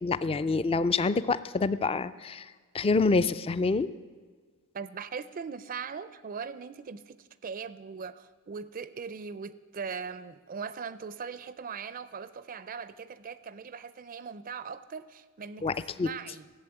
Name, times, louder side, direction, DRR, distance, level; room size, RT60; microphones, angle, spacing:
voice 1, 0.0-2.4 2.7-3.9 15.6-16.1, left 3 dB, 25° left, 14 dB, 0.4 m, -27 dB
voice 2, 4.7-16.5, right 6 dB, 40° right, 15 dB, 0.4 m, -40 dB
14.5 x 7.4 x 8.9 m, 1.5 s
head